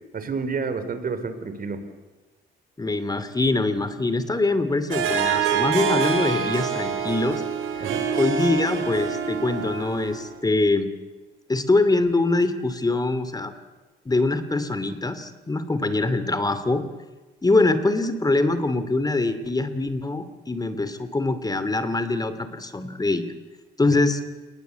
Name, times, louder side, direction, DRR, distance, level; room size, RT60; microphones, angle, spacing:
voice 1, 0.1-1.8 7.8-8.1 23.9-24.0, right 5 dB, 45° right, 10 dB, 3.9 m, -29 dB
voice 2, 2.8-7.4 7.8-7.9 8.1-10.9 11.5-13.5 14.0-16.8 17.4-23.3 23.8-24.2, left 2 dB, 20° left, 11 dB, 2.7 m, -23 dB
Harp, 4.9-10.4, right 7 dB, 90° right, 4.1 m, -26 dB
28.5 x 20.0 x 8.2 m, 1.2 s
cardioid pair, 90°, 20 cm